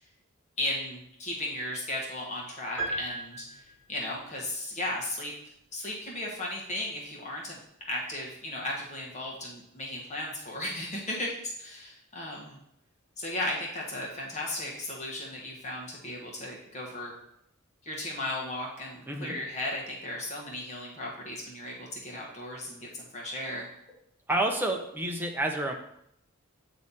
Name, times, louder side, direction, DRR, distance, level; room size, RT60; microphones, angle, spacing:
voice 1, 0.6-3.6 3.9-5.3 5.7-7.6 7.9-12.6 13.2-17.1 17.8-23.7, left 1 dB, 35° left, -2 dB, 1.4 m, -35 dB
sound 1, 2.8-4.1, right 2 dB, 85° left, 1.8 m, -36 dB
voice 2, 19.1-19.4 24.3-25.7, right 1 dB, 10° right, 2 dB, 0.7 m, -29 dB
8.8 x 3.2 x 4.1 m, 0.75 s
head